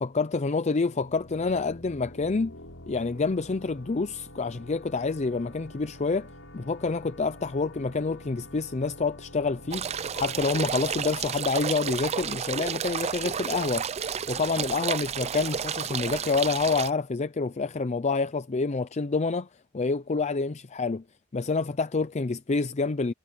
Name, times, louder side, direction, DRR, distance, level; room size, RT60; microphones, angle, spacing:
voice 1, 0.0-2.5 2.9-6.3 6.5-9.9 10.1-13.9 14.3-19.5 19.7-21.0 21.3-23.1, left 4 dB, 35° left, 0.5 m, -27 dB
sound 1, 0.8-12.3, left 1 dB, 80° left, 4.8 m, -48 dB
sound 2, 9.7-16.9, right 7 dB, 30° right, 0.5 m, -31 dB
head